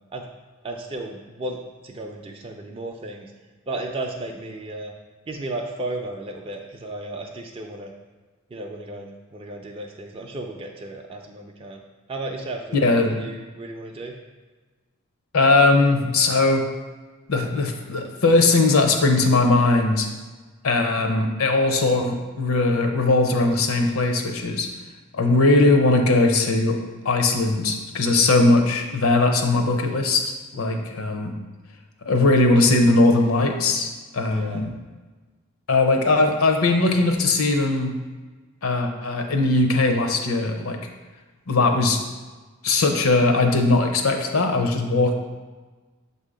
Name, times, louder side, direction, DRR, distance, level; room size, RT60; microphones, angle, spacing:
voice 1, 0.6-3.3 3.7-4.9 5.3-7.9 8.5-11.8 12.1-14.2 30.5-30.8 34.3-34.6, right 2 dB, 25° right, 1 dB, 0.4 m, -34 dB
voice 2, 12.7-13.2 15.3-16.6 17.3-20.1 20.6-24.7 25.1-26.8 27.0-30.2 30.5-31.3 32.0-34.7 35.7-37.9 38.6-40.8 41.5-42.0 42.6-45.1, left 2 dB, 75° left, 5 dB, 0.7 m, -19 dB
7.1 x 2.7 x 4.9 m, 1.3 s
head